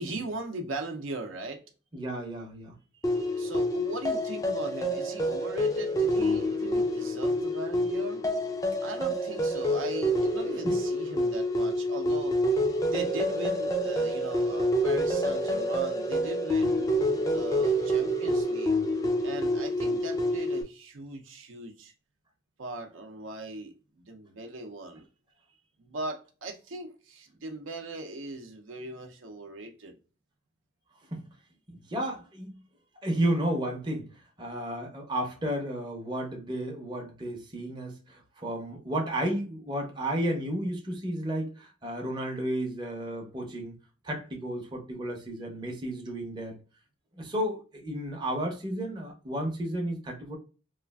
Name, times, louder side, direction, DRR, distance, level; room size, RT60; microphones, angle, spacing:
voice 1, 0.0-1.6 3.1-8.2 8.8-12.3 12.9-16.9 17.1-18.7 19.2-21.9 22.6-25.1 25.8-29.9, right 2 dB, 75° right, 0.6 m, -39 dB
voice 2, 1.9-2.7 10.6-10.8 31.1-31.2 31.9-32.6 33.0-43.7 44.0-46.6 47.2-50.4, right 1 dB, 20° right, 0.6 m, -32 dB
sound 1, 3.0-20.6, equal, 15° left, 0.3 m, -27 dB
3.0 x 2.4 x 2.2 m
head